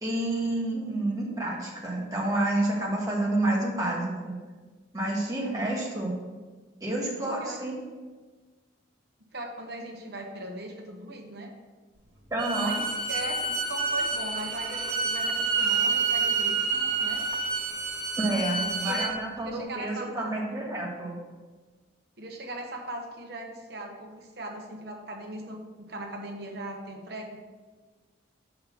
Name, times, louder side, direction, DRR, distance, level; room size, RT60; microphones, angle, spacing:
voice 1, 0.0-4.3 4.9-6.1 6.8-7.8 12.3-12.7 13.1-13.2 18.2-21.1, right 2 dB, 20° right, -4 dB, 1.6 m, -29 dB
voice 2, 7.2-7.6 9.3-11.5 12.6-17.2 18.5-19.1 19.4-20.4 22.2-27.4, right 1 dB, 55° right, 1 dB, 1.2 m, -39 dB
Bowed string instrument, 12.4-19.1, right 4 dB, 75° right, 1.7 m, -28 dB
5.6 x 5.4 x 5.9 m, 1.3 s
head